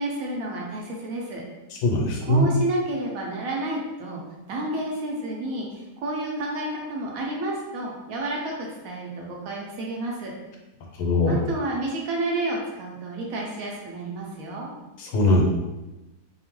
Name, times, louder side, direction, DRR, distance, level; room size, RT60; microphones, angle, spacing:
voice 1, 0.0-1.4 2.2-4.2 4.5-10.3 11.3-14.7, right 2 dB, 70° right, -2 dB, 0.9 m, -30 dB
voice 2, 1.8-2.4 11.0-11.4 15.0-15.4, left 1 dB, 90° left, 0 dB, 1.2 m, -21 dB
2.9 x 2.1 x 3.0 m, 1.0 s
omnidirectional pair, 1.7 m